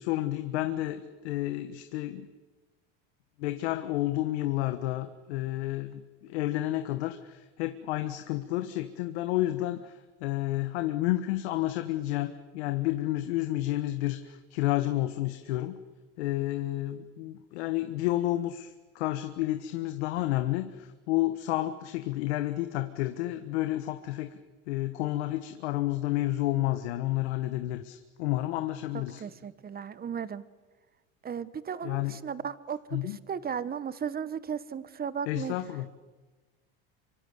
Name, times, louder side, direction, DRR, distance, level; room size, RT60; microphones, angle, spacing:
voice 1, 0.0-2.3 3.4-15.8 16.2-24.3 24.7-29.2 31.8-32.2 32.9-33.2 35.3-35.9, left 16 dB, 85° left, 9 dB, 1.4 m, -30 dB
voice 2, 28.9-30.4 31.2-35.6, right 7 dB, 30° right, 16 dB, 1.4 m, -35 dB
25.5 x 25.0 x 8.2 m, 1.3 s
supercardioid pair, 100°, 32 cm